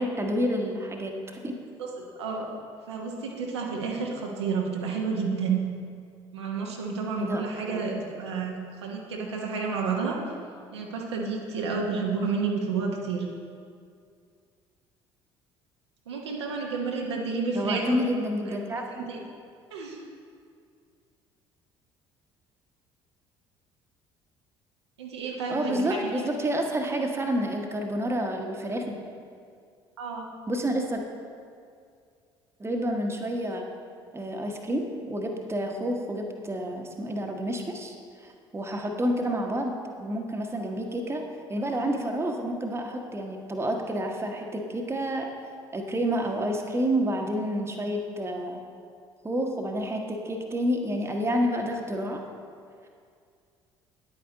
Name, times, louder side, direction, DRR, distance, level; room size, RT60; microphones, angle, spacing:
voice 1, 0.0-1.6 7.2-7.9 17.5-19.1 25.5-29.0 30.5-31.0 32.6-33.6 34.1-37.9 38.2-45.3 45.7-48.6 49.2-52.2, equal, 20° right, 2 dB, 1.2 m, -29 dB
voice 2, 2.0-2.5 2.9-5.6 6.3-8.6 8.8-10.2 10.7-13.2 16.1-18.0 18.5-18.6 19.1-19.2 19.7-20.0 25.0-26.1 30.0-30.3, right 5 dB, 75° right, -1 dB, 1.0 m, -30 dB
9.8 x 8.7 x 3.9 m, 2.3 s
figure-of-eight pair, 55°, 14 cm